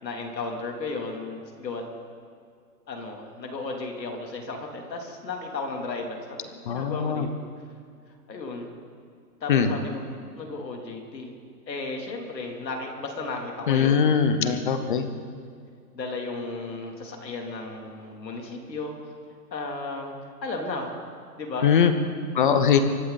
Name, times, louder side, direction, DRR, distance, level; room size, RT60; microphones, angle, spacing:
voice 1, 0.0-1.8 2.9-7.3 8.3-8.7 9.4-10.1 10.3-11.4 11.7-14.1 14.5-14.6 15.9-19.0 19.5-20.1 20.4-21.0 21.4-21.7, left 3 dB, 85° left, 2 dB, 3.2 m, -34 dB
voice 2, 6.7-7.3 9.5-9.8 13.7-15.1 21.6-21.9 22.3-22.8, left 7 dB, 30° left, 10 dB, 0.8 m, -21 dB
24.0 x 12.0 x 4.1 m, 2.2 s
hypercardioid pair, 165°, 49 cm